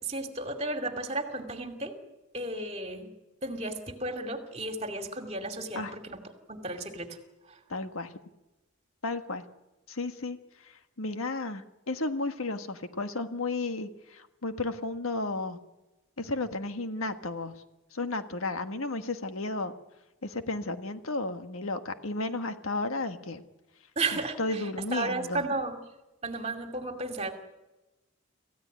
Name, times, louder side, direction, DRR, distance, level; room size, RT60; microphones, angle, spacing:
voice 1, 0.0-1.9 2.3-3.1 3.4-6.2 6.5-7.1 24.0-24.6 24.9-25.8 26.2-27.3, right 2 dB, 30° right, 5 dB, 2.5 m, -33 dB
voice 2, 7.7-8.1 9.0-9.4 9.9-10.4 10.6-15.6 16.2-17.5 17.9-19.8 20.2-23.4 24.1-25.5, left 2 dB, 80° left, 8 dB, 1.5 m, -33 dB
27.5 x 15.5 x 9.5 m, 1.1 s
head